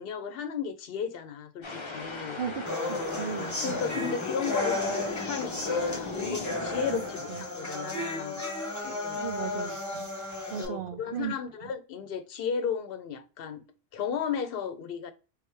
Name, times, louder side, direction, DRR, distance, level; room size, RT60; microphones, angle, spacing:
voice 1, 0.0-2.4 3.6-8.4 8.8-9.2 10.6-13.6 13.9-15.1, left 7 dB, 70° left, 0.8 m, -34 dB
sound 1, 1.6-7.9, left 3 dB, 35° left, 0.7 m, -38 dB
voice 2, 2.4-3.8 6.9-7.0 7.3-7.4 9.1-10.1 10.5-11.3 11.6-11.7, right 8 dB, 65° right, 0.7 m, -36 dB
sound 2, 2.7-10.6, left 2 dB, 15° left, 1.1 m, -33 dB
3.4 x 3.3 x 3.1 m
omnidirectional pair, 1.0 m